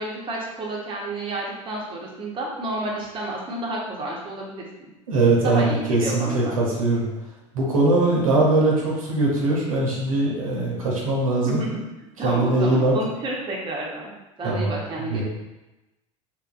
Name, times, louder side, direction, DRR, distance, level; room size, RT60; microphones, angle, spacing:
voice 1, 0.0-4.6 5.4-6.5 11.5-11.7 12.2-14.1 14.4-15.2, right 1 dB, 30° right, -3 dB, 0.8 m, -30 dB
voice 2, 5.1-7.0 7.5-11.6 12.2-12.9 14.4-14.7 15.0-15.2, right 2 dB, 85° right, -4 dB, 0.7 m, -21 dB
2.9 x 2.4 x 2.4 m, 1.0 s
hypercardioid pair, 80°, 17 cm